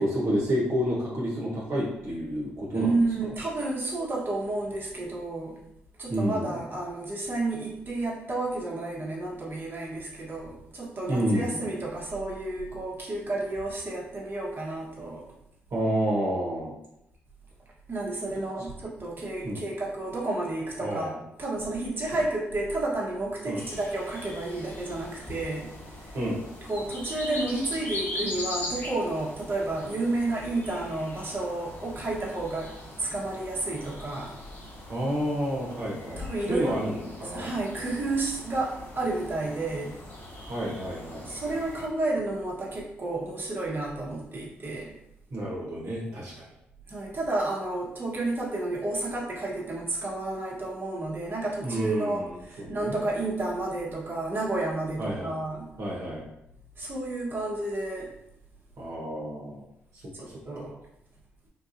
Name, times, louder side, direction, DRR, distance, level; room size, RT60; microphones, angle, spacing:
voice 1, 0.0-2.9 6.1-6.6 11.1-11.6 15.7-16.7 19.4-19.6 20.8-21.2 23.4-23.6 26.1-26.4 34.9-37.5 40.4-41.3 45.3-46.5 51.6-53.0 55.0-55.3 55.8-56.2 58.8-59.6 60.2-60.7, equal, 60° right, -6 dB, 1.1 m, -30 dB
voice 2, 2.7-5.6 6.0-15.2 17.9-26.1 26.7-32.7 33.0-34.3 36.2-36.8 37.3-39.9 41.3-44.9 46.9-55.7 56.8-58.1 60.5-60.7, right 2 dB, 40° right, -5 dB, 1.2 m, -31 dB
sound 1, 23.6-41.9, left 1 dB, 45° left, 1.0 m, -41 dB
3.8 x 2.6 x 2.6 m, 0.83 s
hypercardioid pair, 45°, 6 cm